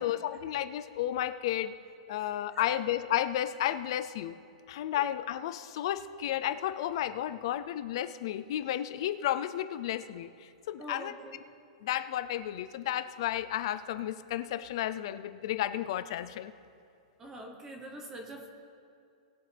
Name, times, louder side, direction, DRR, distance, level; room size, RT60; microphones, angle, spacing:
voice 1, 0.0-1.7 2.1-4.4 4.7-11.1 11.8-16.5, left 12 dB, 45° left, 12 dB, 0.4 m, -32 dB
voice 2, 10.8-11.4 17.2-18.5, right 1 dB, 10° right, 3 dB, 1.0 m, -45 dB
20.0 x 7.6 x 3.4 m, 2.5 s
supercardioid pair, 175°, 4 cm